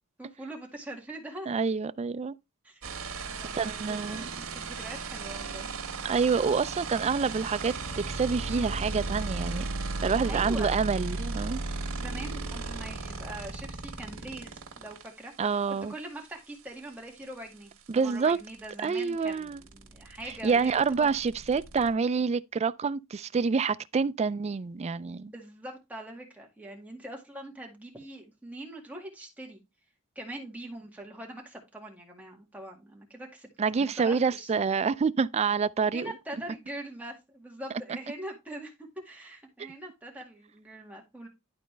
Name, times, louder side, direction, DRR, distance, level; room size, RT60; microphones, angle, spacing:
voice 1, 0.2-1.5 2.6-2.9 3.3-5.8 10.3-10.8 11.9-15.3 15.7-17.7 18.0-21.1 25.3-29.6 30.2-34.5 35.9-41.3, right 1 dB, 5° right, 1.9 m, -43 dB
voice 2, 1.5-2.3 3.5-4.2 6.0-9.6 10.0-11.6 15.4-15.9 17.9-18.4 18.8-19.6 20.4-25.3 33.6-36.1, right 5 dB, 30° right, 0.3 m, -27 dB
sound 1, 2.8-15.1 17.2-17.3 17.5-21.9, right 3 dB, 75° right, 1.7 m, -36 dB
11.5 x 4.2 x 3.3 m
head